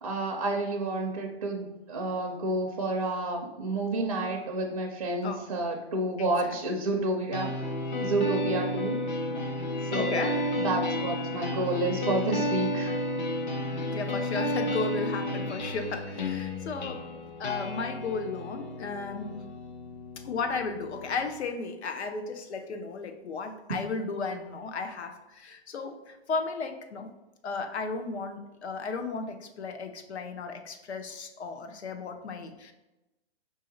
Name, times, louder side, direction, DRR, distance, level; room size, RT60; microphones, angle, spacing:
voice 1, 0.0-7.7 8.0-9.0 9.8-10.3 10.6-12.9, right 2 dB, 35° right, -1 dB, 0.4 m, -30 dB
voice 2, 6.2-6.6 9.9-10.5 13.9-17.1 17.4-19.5 20.2-27.1 27.4-32.7, left 4 dB, 85° left, 7 dB, 0.8 m, -35 dB
sound 1, 7.3-21.3, left 1 dB, 45° left, 0.7 m, -32 dB
5.0 x 2.7 x 3.8 m, 1.0 s
hypercardioid pair, 175°, 32 cm